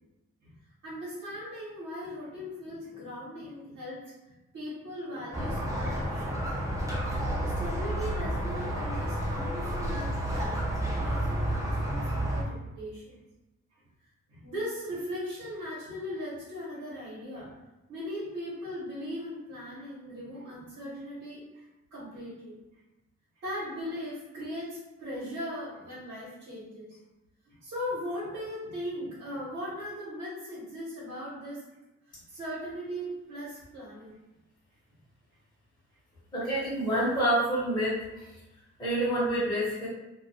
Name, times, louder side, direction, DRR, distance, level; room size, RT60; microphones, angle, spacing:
voice 1, 0.8-4.0 4.5-6.4 7.6-13.1 14.3-17.5 17.9-21.7 21.9-22.6 23.4-27.0 27.4-31.6 32.1-34.2, equal, 70° right, -9 dB, 1.0 m, -38 dB
Squeak, 5.3-12.4, right 1 dB, 10° right, 0.5 m, -30 dB
voice 2, 36.3-38.0 38.8-39.9, right 1 dB, 15° left, -10 dB, 0.8 m, -27 dB
2.3 x 2.2 x 2.6 m, 1.0 s
wide cardioid pair, 120°, 29 cm